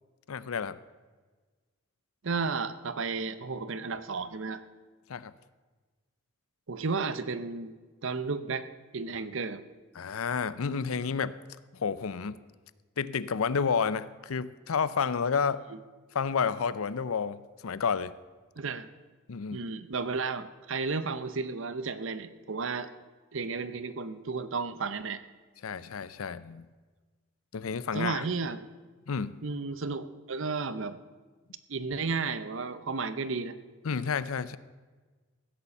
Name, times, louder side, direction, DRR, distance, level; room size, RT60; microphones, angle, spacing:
voice 1, 0.3-0.8 5.1-5.3 9.9-11.4 11.7-12.4 13.0-15.6 16.1-18.1 19.3-19.6 25.6-26.7 27.5-28.2 29.1-29.4 33.8-34.6, left 6 dB, 85° left, 16 dB, 0.6 m, -30 dB
voice 2, 2.2-4.6 6.7-7.7 8.0-8.7 8.9-9.6 15.7-15.8 18.6-18.9 19.5-22.9 23.3-25.2 27.9-28.6 29.4-31.0 31.7-33.6, right 4 dB, 70° right, 13 dB, 0.7 m, -33 dB
15.5 x 6.9 x 7.1 m, 1.4 s
head